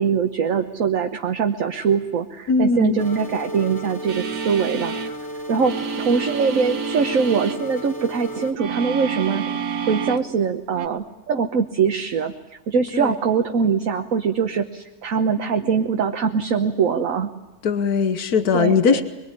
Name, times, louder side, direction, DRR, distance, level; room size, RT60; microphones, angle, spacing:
voice 1, 0.0-4.9 5.5-9.4 9.8-12.3 12.7-17.3 18.5-19.0, right 6 dB, 65° right, 5 dB, 1.5 m, -22 dB
voice 2, 2.5-3.0 12.9-13.1 17.6-19.0, left 5 dB, 85° left, 10 dB, 1.7 m, -19 dB
sound 1, 3.0-8.5, right 1 dB, 15° left, 2.2 m, -33 dB
sound 2, 4.1-5.1 5.6-7.6 8.5-10.3 10.7-10.9, right 6 dB, 80° right, 1.6 m, -29 dB
23.5 x 23.0 x 9.9 m, 1.1 s
omnidirectional pair, 1.6 m